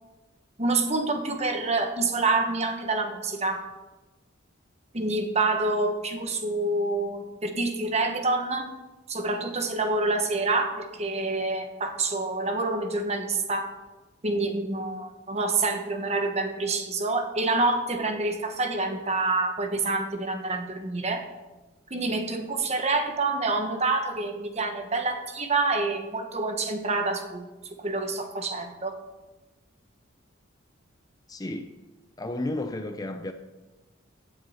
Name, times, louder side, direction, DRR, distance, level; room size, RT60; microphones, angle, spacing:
voice 1, 0.6-3.6 4.9-8.7 9.1-13.7 14.2-21.2 21.9-27.5 27.8-29.0, right 3 dB, 35° right, 1.2 m, -27 dB
voice 2, 31.3-31.8 32.2-33.3, left 1 dB, 20° left, 0.6 m, -32 dB
16.0 x 9.2 x 4.3 m
head